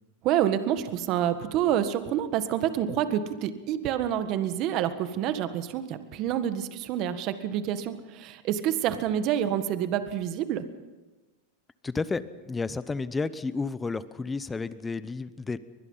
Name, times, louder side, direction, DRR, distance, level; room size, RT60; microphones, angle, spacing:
voice 1, 0.2-10.6, right 10 dB, 45° right, 10 dB, 1.6 m, -28 dB
voice 2, 11.8-15.6, left 4 dB, 15° left, 15 dB, 0.9 m, -31 dB
23.5 x 21.0 x 5.7 m, 1.2 s
supercardioid pair, 130°, 0 cm